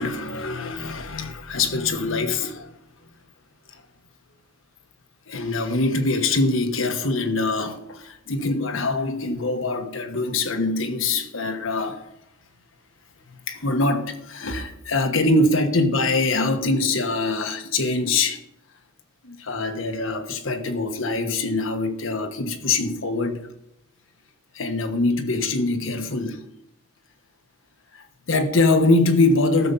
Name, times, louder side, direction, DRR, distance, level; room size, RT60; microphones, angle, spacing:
voice 1, 0.0-2.7 3.7-3.8 5.3-12.0 13.5-18.4 19.2-23.5 24.5-26.4 27.9-29.7, left 2 dB, 85° left, 1.3 m, -23 dB
14.0 x 7.0 x 5.5 m
head